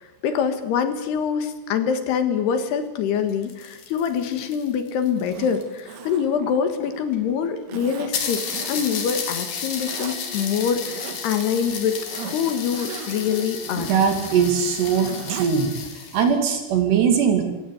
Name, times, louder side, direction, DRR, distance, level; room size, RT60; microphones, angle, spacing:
voice 1, 0.2-14.0, left 7 dB, 70° left, 9 dB, 3.5 m, -25 dB
sound 1, 3.2-5.9 6.8-6.9 7.1-7.2 7.6-7.7 8.1-16.3, left 6 dB, 55° left, 4.1 m, -32 dB
Zipper (clothing), 5.2-7.1 7.7-9.1 9.5-10.2 10.7-11.4 11.8-15.5 15.9-16.0, right 8 dB, 90° right, 4.2 m, -38 dB
voice 2, 13.8-15.7 16.1-17.4, right 7 dB, 70° right, 5 dB, 4.7 m, -20 dB
26.5 x 14.0 x 9.4 m, 1.1 s
omnidirectional pair, 5.0 m